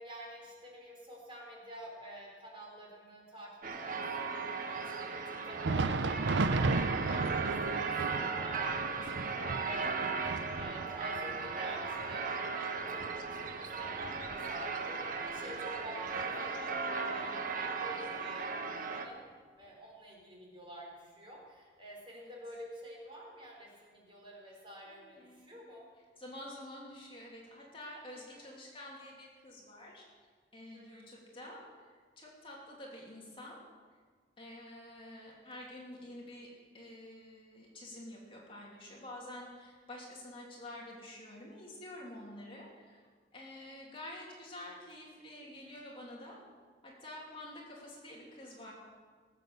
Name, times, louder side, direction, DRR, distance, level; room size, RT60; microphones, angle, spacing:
voice 1, 0.0-15.0 15.3-19.2 19.6-25.8 28.3-28.5 30.7-31.1 43.6-43.7, equal, 30° right, -2 dB, 4.2 m, -49 dB
sound 1, 3.6-19.1, right 4 dB, 50° right, 1.2 m, -37 dB
Thunder, 5.4-14.9 15.2-15.4 16.1-16.2 17.2-17.3, right 3 dB, 75° right, 0.6 m, -35 dB
voice 2, 24.9-25.6 26.2-30.0 30.5-33.6 34.4-43.0 43.3-46.4 46.8-48.7, left 1 dB, 30° left, -3 dB, 2.9 m, -48 dB
18.5 x 8.4 x 6.9 m, 1.5 s
head